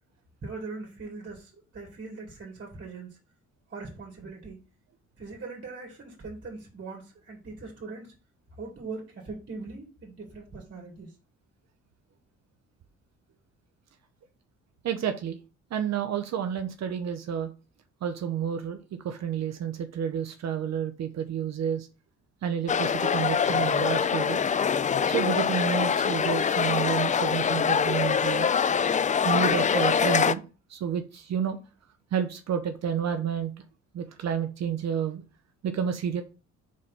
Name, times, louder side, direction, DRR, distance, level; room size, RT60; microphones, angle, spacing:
voice 1, 0.4-3.1 3.7-4.6 5.2-8.1 8.6-11.1, right 3 dB, 40° right, 1 dB, 2.1 m, -41 dB
voice 2, 14.8-15.4 15.7-17.5 18.0-21.9 22.4-24.4 25.1-28.5 29.2-30.4 30.7-31.6 32.1-33.5 33.9-35.2 35.6-36.2, right 8 dB, 60° right, 7 dB, 0.8 m, -30 dB
sound 1, 22.7-30.3, left 7 dB, 25° left, 0.4 m, -24 dB
4.9 x 4.2 x 5.7 m, 0.33 s
cardioid pair, 90°, 30 cm